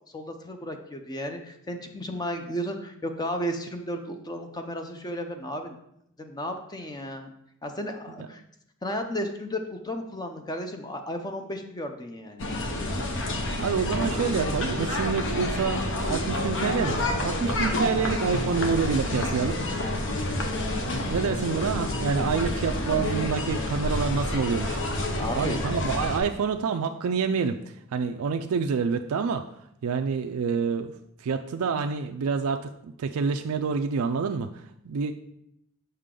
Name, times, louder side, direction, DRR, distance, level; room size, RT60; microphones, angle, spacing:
voice 1, 0.1-5.8 6.2-7.3 7.6-8.4 8.8-12.5 25.2-25.6, equal, 20° left, 5 dB, 0.5 m, -33 dB
sound 1, 12.4-26.2, left 1 dB, 60° left, 0.9 m, -28 dB
voice 2, 13.6-19.6 21.1-29.5 29.8-30.9 31.2-35.1, right 5 dB, 80° right, 6 dB, 0.4 m, -27 dB
6.7 x 5.6 x 3.7 m, 0.76 s
head